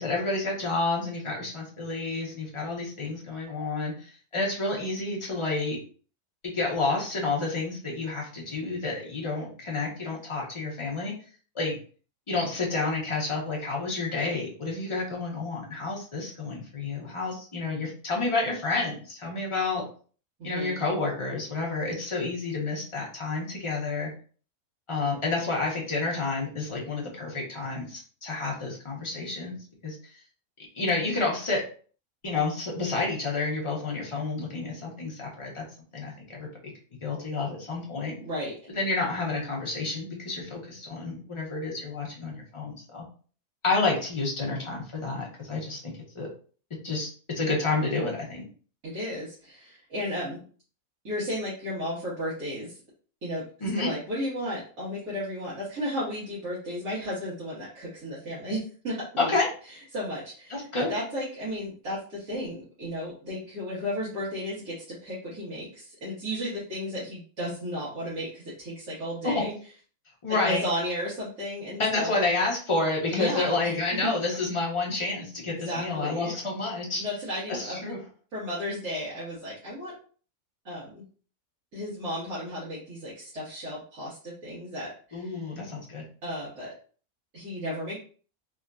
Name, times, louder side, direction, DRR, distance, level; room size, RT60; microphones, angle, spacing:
voice 1, 0.0-5.8 6.4-11.1 11.5-11.8 12.3-19.8 20.4-24.1 24.9-29.5 29.8-30.1 30.7-31.6 32.2-35.6 35.9-36.5 37.0-38.1 38.7-43.0 43.6-46.3 46.8-47.1 47.3-48.5 53.6-53.9 59.2-59.5 60.5-60.9 69.2-69.3 70.2-70.6 71.8-77.0 77.5-78.0 85.1-86.0, left 3 dB, 35° left, -2 dB, 0.5 m, -29 dB
voice 2, 20.4-20.8 38.2-38.5 48.8-50.4 51.0-52.7 53.2-53.4 53.7-59.3 59.9-69.5 70.3-72.1 73.1-73.7 74.0-74.1 75.5-76.3 77.0-77.8 78.3-79.9 80.6-81.0 81.7-85.4 86.2-86.7 87.3-88.0, equal, 70° right, -10 dB, 1.7 m, -34 dB
3.6 x 2.5 x 2.2 m, 0.41 s
omnidirectional pair, 1.6 m